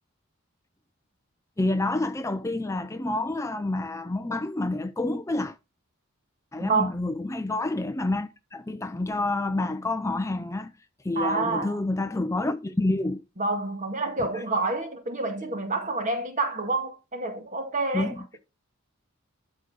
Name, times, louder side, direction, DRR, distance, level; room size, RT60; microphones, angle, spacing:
voice 1, 1.6-5.6 6.5-10.7 11.0-13.2 17.9-18.2, left 2 dB, 15° left, 0.5 m, -28 dB
voice 2, 6.6-6.9 11.2-11.8 13.4-18.2, right 3 dB, 35° right, 1.9 m, -28 dB
12.0 x 4.9 x 3.9 m
head